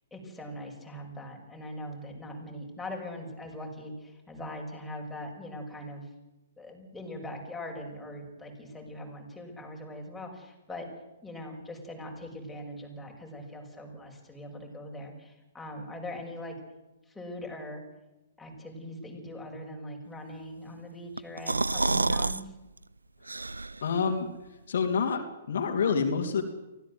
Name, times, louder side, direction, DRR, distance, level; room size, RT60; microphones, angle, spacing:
voice 1, 0.1-6.1 6.6-10.9 11.2-16.5 17.1-17.8 18.4-22.6, left 1 dB, 5° left, -1 dB, 6.3 m, -41 dB
sound 1, 21.2-22.4 22.8-22.9 23.3-23.9, right 3 dB, 85° right, 0.7 m, -28 dB
voice 2, 23.8-24.3 24.7-26.4, left 5 dB, 60° left, 4 dB, 3.1 m, -27 dB
24.0 x 17.0 x 8.0 m, 1.0 s
figure-of-eight pair, 120°, 0 cm